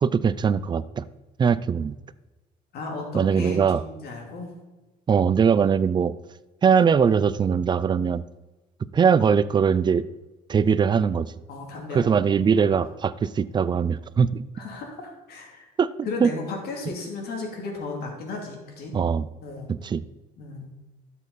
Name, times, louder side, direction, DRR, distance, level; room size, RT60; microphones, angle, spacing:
voice 1, 0.0-1.0 1.4-1.9 3.1-3.8 5.1-6.1 6.6-8.2 8.9-10.0 10.5-11.3 11.9-14.4 15.8-15.9 16.2-16.3 18.9-19.2 19.8-20.0, right 6 dB, 25° right, 16 dB, 0.4 m, -21 dB
voice 2, 2.7-4.5 11.5-12.8 14.5-15.7 16.0-19.0 19.4-19.7 20.4-20.7, left 3 dB, 70° left, 1 dB, 2.9 m, -35 dB
12.5 x 7.3 x 4.1 m, 1.2 s
cardioid pair, 110°, 17 cm